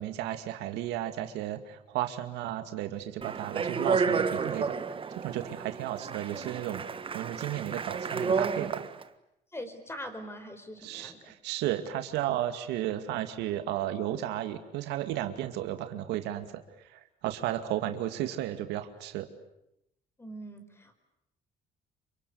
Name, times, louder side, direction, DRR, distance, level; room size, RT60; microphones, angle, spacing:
voice 1, 0.0-4.7 5.1-6.8 7.1-8.8 10.8-16.5 16.9-19.3, right 12 dB, 90° right, 8 dB, 2.3 m, -33 dB
Speech, 3.2-9.0, right 5 dB, 30° right, 1.6 m, -31 dB
voice 2, 9.5-11.2 20.2-20.9, equal, 15° left, 8 dB, 5.0 m, -42 dB
28.0 x 25.0 x 8.6 m, 0.81 s
cardioid pair, 110°, 17 cm